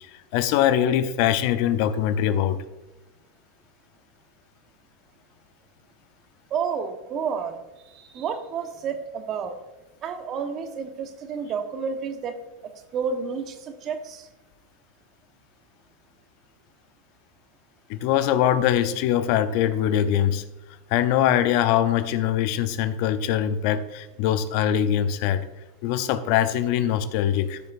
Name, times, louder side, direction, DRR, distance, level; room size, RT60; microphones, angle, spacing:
voice 1, 0.0-2.6 17.9-20.4 20.9-25.4 25.8-27.6, left 10 dB, 60° left, 12 dB, 0.6 m, -22 dB
voice 2, 6.5-9.5 10.0-12.4 12.9-14.3, right 6 dB, 40° right, 7 dB, 1.2 m, -30 dB
13.5 x 6.5 x 2.6 m, 1.1 s
hypercardioid pair, 100°, 0 cm